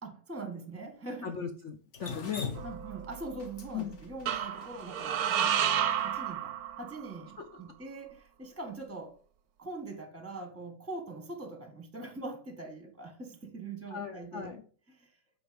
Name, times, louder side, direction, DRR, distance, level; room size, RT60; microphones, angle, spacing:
voice 1, 0.0-1.3 2.6-9.2 9.6-14.5 14.9-15.1, right 2 dB, 10° right, 1.2 m, -42 dB
voice 2, 1.2-2.5 3.7-4.0 7.4-7.6 13.9-14.6, left 7 dB, 65° left, 0.7 m, -38 dB
Drip, 1.9-6.1, left 5 dB, 40° left, 1.4 m, -41 dB
sound 1, 2.6-3.4 4.3-7.1, right 9 dB, 65° right, 1.0 m, -31 dB
8.5 x 3.6 x 6.8 m
omnidirectional pair, 2.1 m